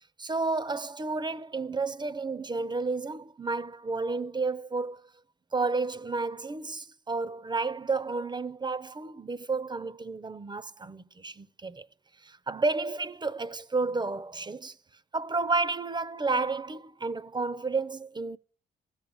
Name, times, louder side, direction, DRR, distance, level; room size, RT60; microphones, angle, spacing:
voice 1, 0.2-5.0 5.5-11.9 12.2-14.8 15.1-18.4, right 3 dB, 20° right, 0.6 m, -31 dB
14.0 x 7.2 x 8.9 m
cardioid pair, 90°, 20 cm